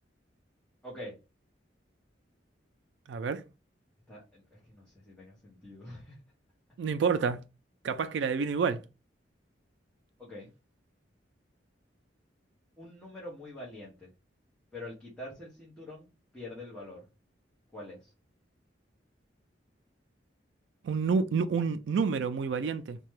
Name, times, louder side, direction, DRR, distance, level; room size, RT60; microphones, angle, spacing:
voice 1, 0.8-1.1 4.1-6.2 10.2-10.5 12.8-14.1 14.7-16.1 16.3-17.0 17.7-18.1, left 1 dB, 5° left, 0.9 m, -45 dB
voice 2, 3.1-3.4 6.8-7.4 7.8-8.8 20.8-23.0, right 5 dB, 70° right, 0.3 m, -28 dB
2.8 x 2.2 x 3.1 m
head